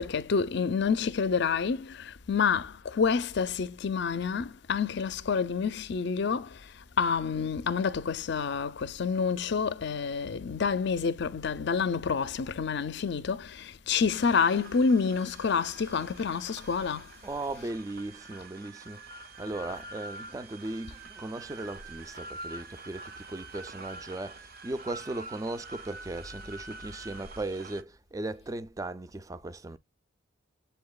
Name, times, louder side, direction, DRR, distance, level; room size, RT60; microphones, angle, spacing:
voice 1, 0.0-17.1 17.6-17.7, left 5 dB, 60° left, 0.5 m, -28 dB
sound 1, 14.1-27.8, right 2 dB, 50° right, 0.7 m, -46 dB
voice 2, 17.2-29.8, right 2 dB, 15° right, 0.4 m, -37 dB
7.9 x 2.9 x 2.2 m
head